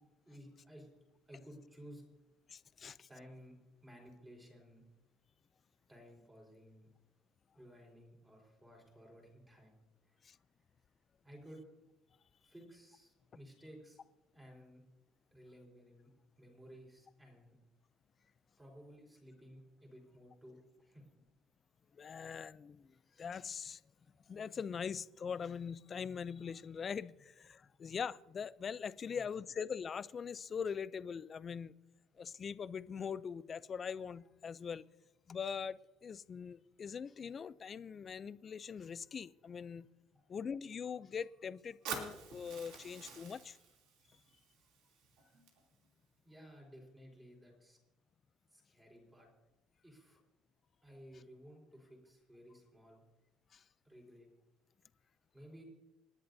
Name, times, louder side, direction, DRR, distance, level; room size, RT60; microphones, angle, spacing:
voice 1, 0.3-0.9 1.3-2.0 3.1-4.8 5.9-6.9 7.5-9.8 10.1-10.2 11.2-11.6 12.4-14.0 14.3-14.8 15.3-16.1 16.4-17.6 18.6-21.0 29.1-29.3 46.2-47.8 48.5-49.3 49.8-50.2 50.8-53.0 53.8-54.3 55.3-55.6, equal, 10° right, 4.2 m, -56 dB
voice 2, 2.5-3.1 10.2-10.4 21.9-23.8 24.3-31.7 32.2-34.8 35.3-39.9 40.3-43.6 53.5-53.6, left 6 dB, 25° left, 0.4 m, -42 dB
Fire, 41.9-45.9, right 6 dB, 80° right, 2.9 m, -48 dB
28.5 x 11.0 x 2.7 m
cardioid pair, 155°, 0 cm